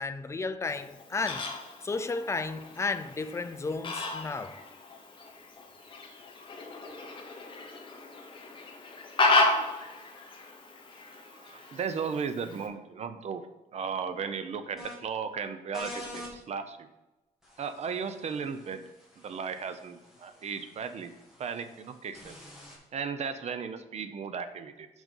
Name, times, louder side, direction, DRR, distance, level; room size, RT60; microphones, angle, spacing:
voice 1, 0.0-1.5 1.8-4.6, left 3 dB, 20° left, 0.4 m, -33 dB
Fowl, 0.7-12.7, left 2 dB, 35° left, 1.3 m, -33 dB
voice 2, 11.0-13.4 13.7-16.9 17.6-18.8 19.2-21.1 21.4-22.4 22.9-24.9, right 6 dB, 50° right, 0.7 m, -36 dB
sound 1, 14.8-14.9 15.7-16.3 17.4-22.8, left 1 dB, 5° right, 2.0 m, -47 dB
6.2 x 5.3 x 5.3 m
wide cardioid pair, 145°, 14 cm